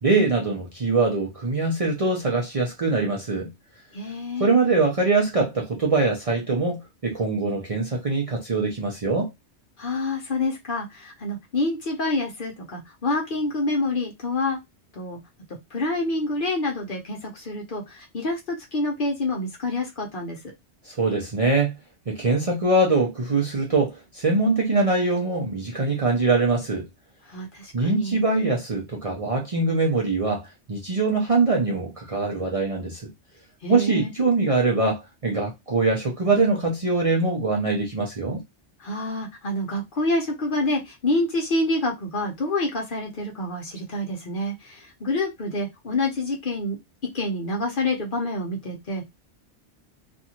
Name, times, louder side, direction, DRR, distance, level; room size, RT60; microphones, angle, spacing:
voice 1, 0.0-3.5 4.4-9.3 20.9-21.7 22.1-26.9 27.7-33.1 33.7-38.4, right 3 dB, 40° right, 0.6 m, -23 dB
voice 2, 3.9-4.5 9.8-14.6 14.9-15.2 15.7-20.4 27.3-28.2 33.6-34.1 38.8-46.8 47.1-49.1, left 2 dB, 50° left, 0.9 m, -27 dB
2.6 x 2.4 x 2.8 m
omnidirectional pair, 1.2 m